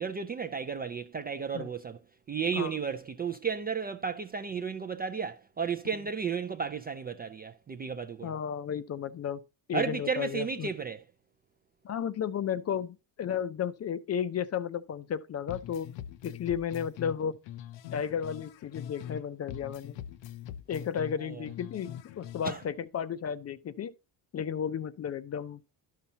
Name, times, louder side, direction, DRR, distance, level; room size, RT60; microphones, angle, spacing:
voice 1, 0.0-2.0 2.3-8.3 9.7-11.0 21.2-21.4 22.4-22.6, right 6 dB, 25° right, 0.3 m, -33 dB
voice 2, 8.2-9.4 9.7-10.7 11.8-15.9 16.2-17.3 17.9-20.0 20.7-23.9 24.3-25.6, left 8 dB, 35° left, 0.5 m, -33 dB
sound 1, 15.5-19.2 19.5-22.7, left 10 dB, 75° left, 0.7 m, -43 dB
11.5 x 5.6 x 2.8 m
cardioid pair, 115°, 45 cm